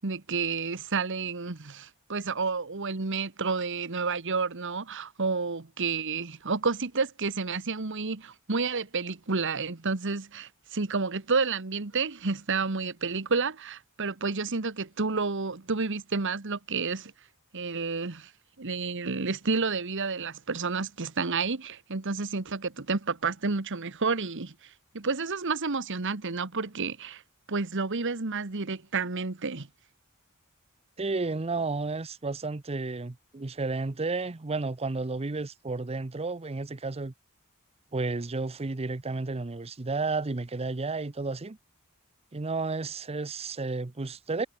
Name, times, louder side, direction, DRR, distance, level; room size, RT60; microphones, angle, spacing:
voice 1, 0.0-17.1 17.5-18.3 18.6-24.5 24.9-27.2 27.5-29.7, right 4 dB, 60° right, 1.3 m, -30 dB
voice 2, 31.0-37.1 37.9-41.6 42.3-44.5, right 3 dB, 30° right, 0.7 m, -32 dB
head